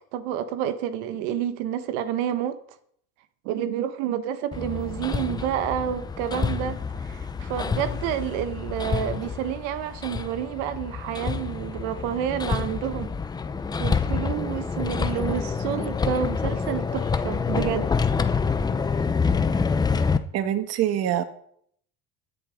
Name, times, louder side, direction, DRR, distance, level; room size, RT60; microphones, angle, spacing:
voice 1, 0.1-2.6 3.4-13.1 13.8-17.9, right 10 dB, 85° right, 1.4 m, -29 dB
Hammer, 4.5-20.2, left 5 dB, 10° left, 0.6 m, -27 dB
voice 2, 20.3-21.2, right 11 dB, 50° right, 1.4 m, -24 dB
16.0 x 10.0 x 5.2 m
cardioid pair, 155°, 34 cm